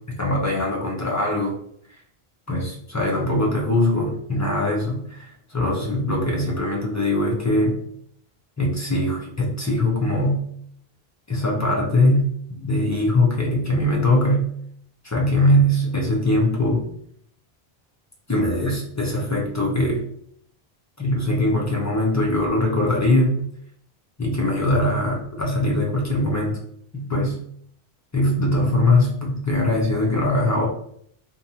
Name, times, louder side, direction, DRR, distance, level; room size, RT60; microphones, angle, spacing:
voice 1, 0.1-1.6 2.5-7.8 8.6-10.4 11.3-14.5 15.0-16.8 18.3-20.0 21.0-23.4 24.2-26.6 26.9-27.4 28.1-30.7, left 1 dB, 25° left, -2 dB, 0.3 m, -21 dB
2.7 x 2.2 x 2.7 m, 0.67 s
omnidirectional pair, 1.1 m